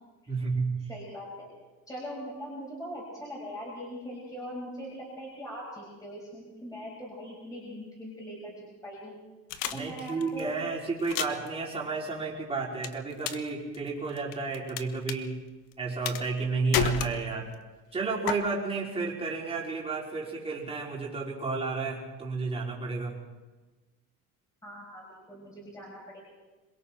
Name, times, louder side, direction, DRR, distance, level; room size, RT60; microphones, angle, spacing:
voice 1, 0.3-0.8 9.7-15.4 15.8-17.5 17.9-23.2, right 4 dB, 20° right, -3 dB, 4.5 m, -32 dB
voice 2, 0.9-1.5 1.9-9.1 9.7-10.5 24.6-26.2, equal, 10° left, -4 dB, 5.9 m, -41 dB
sound 1, 9.5-10.4 11.0-11.5 12.8-13.5 13.7-14.8 15.1-15.2 16.0-16.4 16.7-17.5 18.3-18.4, left 9 dB, 85° left, 1.4 m, -30 dB
26.5 x 22.5 x 4.5 m, 1.2 s
cardioid pair, 160°, 32 cm